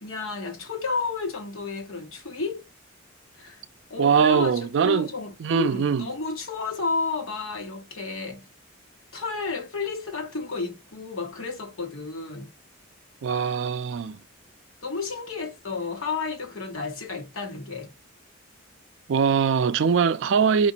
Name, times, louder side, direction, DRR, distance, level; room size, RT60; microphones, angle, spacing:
voice 1, 0.0-2.7 3.3-3.6 3.9-8.4 9.1-12.5 14.8-17.9, left 4 dB, 80° left, 1.2 m, -32 dB
voice 2, 4.0-5.1 5.4-6.1 13.2-14.2 19.1-20.7, right 6 dB, 60° right, 0.3 m, -22 dB
4.9 x 2.5 x 2.7 m
head